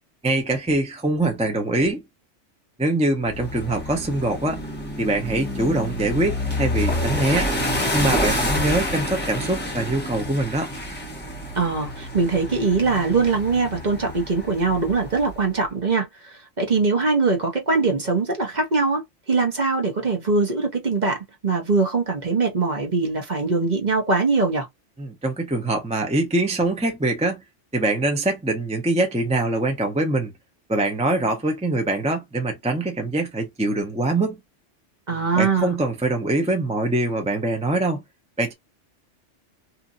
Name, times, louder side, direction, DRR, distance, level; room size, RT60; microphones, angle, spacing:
voice 1, 0.2-2.0 2.8-4.6 5.0-7.5 7.9-10.7 25.0-27.4 27.7-30.3 30.7-34.4 35.3-38.0 38.4-38.5, right 2 dB, 10° right, 0.5 m, -23 dB
sound 1, 3.2-15.4, left 1 dB, 10° left, 1.2 m, -28 dB
voice 2, 11.5-24.7 35.1-35.7, right 4 dB, 40° right, 1.0 m, -22 dB
2.9 x 2.6 x 2.5 m
omnidirectional pair, 1.2 m